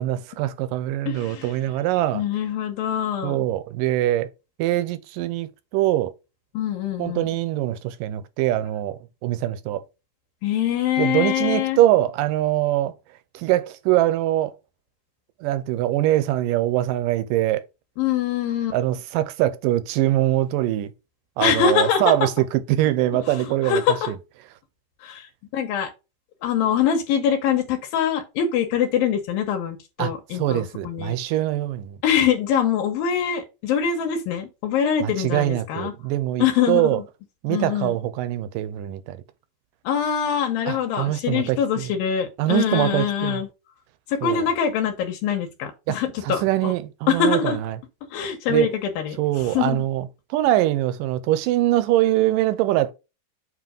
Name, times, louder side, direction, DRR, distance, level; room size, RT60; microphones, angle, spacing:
voice 1, 0.0-2.2 3.2-4.3 4.6-6.1 7.0-9.9 11.0-12.9 13.3-14.5 15.4-17.6 18.7-20.9 21.4-24.2 30.0-32.0 35.0-37.0 37.4-39.2 40.7-41.9 42.4-43.4 44.2-44.5 45.9-46.0 46.2-47.8 48.5-48.7 49.2-52.9, right 14 dB, 85° right, 2.2 m, -23 dB
voice 2, 1.1-1.6 2.1-3.5 6.5-7.3 10.4-11.8 18.0-18.8 21.4-22.3 23.1-24.1 25.0-25.9 26.4-31.2 32.0-35.9 36.4-37.0 37.5-38.0 39.8-43.5 44.1-46.7 47.1-47.6 48.1-49.9, left 8 dB, 90° left, 2.9 m, -24 dB
7.6 x 3.0 x 5.1 m
omnidirectional pair, 4.0 m